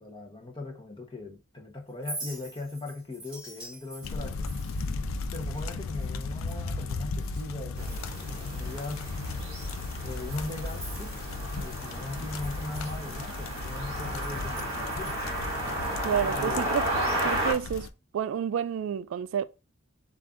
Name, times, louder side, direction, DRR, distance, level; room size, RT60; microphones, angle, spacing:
voice 1, 0.0-4.5 5.3-9.1 10.0-11.1 11.5-15.2 16.3-16.7, left 2 dB, 25° left, 0.9 m, -39 dB
Chink clink, 1.9-7.5 7.8-8.4 8.8-8.9 9.4-11.8 12.1-15.5, right 2 dB, 5° right, 1.5 m, -46 dB
sound 1, 4.0-17.9, left 3 dB, 85° left, 0.4 m, -35 dB
sound 2, 7.8-17.5, right 1 dB, 30° right, 1.8 m, -33 dB
voice 2, 16.0-16.8 17.2-17.9 18.1-19.4, right 8 dB, 75° right, 0.3 m, -29 dB
7.3 x 2.5 x 2.4 m
head